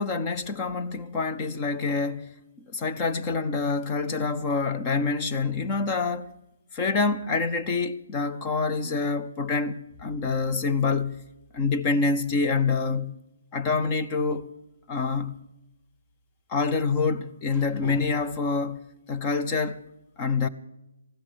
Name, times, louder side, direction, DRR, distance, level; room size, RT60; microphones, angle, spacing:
voice 1, 0.0-2.3 2.6-6.3 6.7-11.2 11.5-13.2 13.5-14.5 14.9-15.4 16.5-18.8 19.1-19.8 20.2-20.5, left 4 dB, 15° left, 0.6 m, -26 dB
15.5 x 12.5 x 6.4 m
hypercardioid pair, 175°, 0 cm